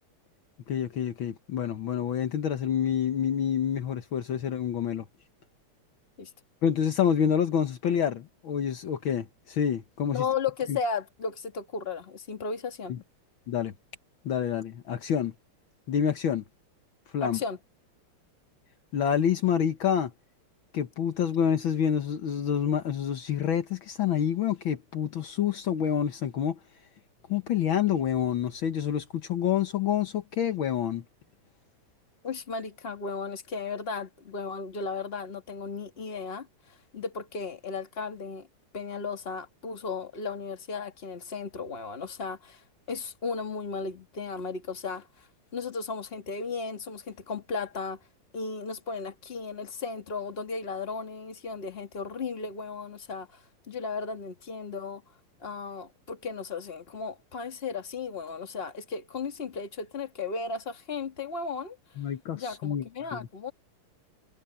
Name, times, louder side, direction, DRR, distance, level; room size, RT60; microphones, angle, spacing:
voice 1, 0.7-5.1 6.6-10.3 10.7-10.8 12.9-13.0 13.5-13.7 14.3-15.3 15.9-16.4 17.1-17.4 18.9-20.1 20.7-26.6 27.3-31.0 62.0-63.3, left 8 dB, 65° left, 1.9 m, -27 dB
voice 2, 10.1-12.9 17.2-17.6 32.2-36.5 36.9-38.5 38.7-45.1 45.5-48.0 48.3-55.0 55.4-61.8 62.3-63.5, left 5 dB, 25° left, 2.0 m, -35 dB
omnidirectional pair, 2.4 m